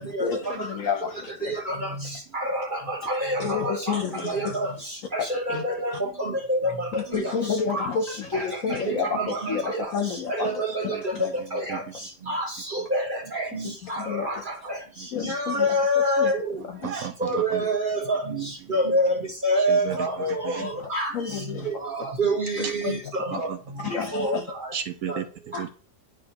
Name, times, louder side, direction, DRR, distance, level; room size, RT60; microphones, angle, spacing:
voice 1, 0.2-1.5 3.4-4.6 5.5-5.6 6.9-11.3 13.8-14.4 15.1-15.8 16.2-16.3 16.7-16.8 20.0-20.2 20.6-20.7 21.1-21.8 22.6-23.0 23.3-23.4 23.8-24.5 25.5-25.6, left 6 dB, 60° left, 5 dB, 1.0 m, -30 dB
voice 2, 2.3-3.9 4.2-4.7 5.1-5.9 6.2-6.9 7.1-7.2 7.7-7.9 8.3-8.4 8.7-9.9 10.3-11.0 11.5-11.8 12.3-13.5 13.9-14.4 15.3-16.4 17.2-18.4 18.7-19.2 19.4-21.1 21.8-23.5 23.9-24.4 25.1-25.2, equal, 35° right, 1 dB, 1.1 m, -26 dB
voice 3, 10.9-11.8 15.0-15.1 16.8-17.6 19.6-20.7 22.6-23.6 24.7-25.7, right 9 dB, 70° right, 8 dB, 0.9 m, -35 dB
9.9 x 4.8 x 2.9 m, 0.40 s
omnidirectional pair, 1.8 m